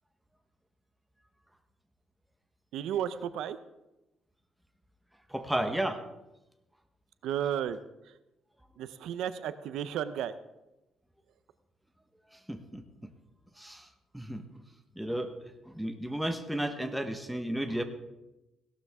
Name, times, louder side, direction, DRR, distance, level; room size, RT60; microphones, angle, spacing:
voice 1, 2.7-3.6 7.2-7.8 8.8-10.3, right 10 dB, 90° right, 13 dB, 0.6 m, -33 dB
voice 2, 5.3-6.0 12.5-13.1 13.6-13.9 14.1-14.4 15.0-15.3 15.6-17.8, right 1 dB, 5° right, 6 dB, 1.1 m, -33 dB
16.5 x 12.5 x 3.6 m, 0.96 s
cardioid pair, 130°, 0 cm